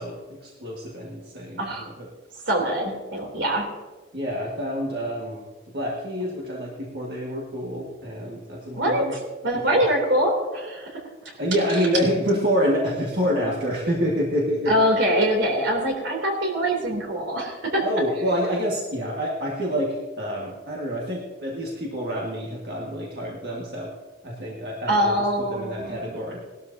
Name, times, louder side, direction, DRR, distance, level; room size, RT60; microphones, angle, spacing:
voice 1, 0.0-2.1 4.1-5.4 5.7-9.1 9.7-9.8 11.4-14.7 17.8-23.9 24.2-25.1 25.5-26.4, equal, 60° right, -4 dB, 1.8 m, -27 dB
voice 2, 1.6-1.9 2.5-3.7 8.7-9.0 9.4-11.4 14.7-17.8 24.9-26.0, equal, 80° right, 1 dB, 3.1 m, -24 dB
19.0 x 12.5 x 2.8 m, 1.3 s
head